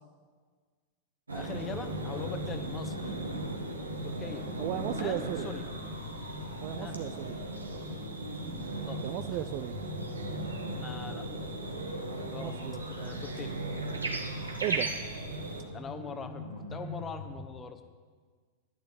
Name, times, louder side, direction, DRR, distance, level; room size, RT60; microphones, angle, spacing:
voice 1, 1.3-3.0 4.0-5.6 6.7-7.0 8.9-9.0 10.7-11.3 12.3-12.6 13.0-13.5 15.7-17.8, left 6 dB, 20° left, 9 dB, 1.2 m, -42 dB
sound 1, 1.3-15.6, right 2 dB, 80° right, 1.6 m, -37 dB
sound 2, 1.4-17.4, left 2 dB, 90° left, 2.6 m, -43 dB
voice 2, 4.6-5.5 6.6-7.4 9.0-9.8 12.4-12.8 14.6-14.9, right 13 dB, 45° right, 10 dB, 0.5 m, -35 dB
11.5 x 10.5 x 8.1 m, 1.6 s
figure-of-eight pair, 90°, 0 cm